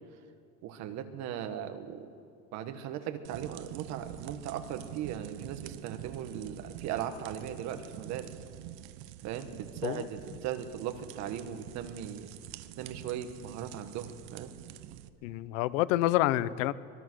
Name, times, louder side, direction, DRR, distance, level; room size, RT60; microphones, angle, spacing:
voice 1, 0.6-2.1 2.5-8.3 9.2-12.3 12.8-14.5, right 9 dB, 45° right, 7 dB, 1.7 m, -38 dB
sound 1, 3.2-15.1, right 13 dB, 65° right, 1.0 m, -46 dB
voice 2, 15.2-16.7, left 15 dB, 90° left, 17 dB, 0.9 m, -28 dB
25.0 x 21.5 x 6.4 m, 2.4 s
cardioid pair, 170°, 37 cm